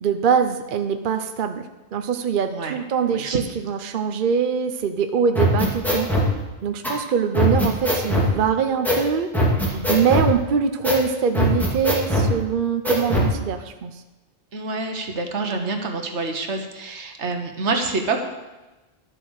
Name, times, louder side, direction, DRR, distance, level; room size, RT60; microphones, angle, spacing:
voice 1, 0.0-1.6 1.9-6.1 6.6-9.3 9.9-13.9, right 7 dB, 50° right, 7 dB, 0.8 m, -23 dB
voice 2, 2.5-2.8 3.1-3.4 9.7-10.0 14.5-18.2, right 3 dB, 75° right, 4 dB, 1.6 m, -27 dB
sound 1, 5.3-6.3 6.8-6.9 7.3-8.3 8.8-9.0 9.3-10.3 10.8-11.0 11.3-12.3 12.8-13.3, equal, ahead, 2.5 m, -20 dB
12.0 x 7.6 x 6.4 m, 1.1 s
omnidirectional pair, 1.2 m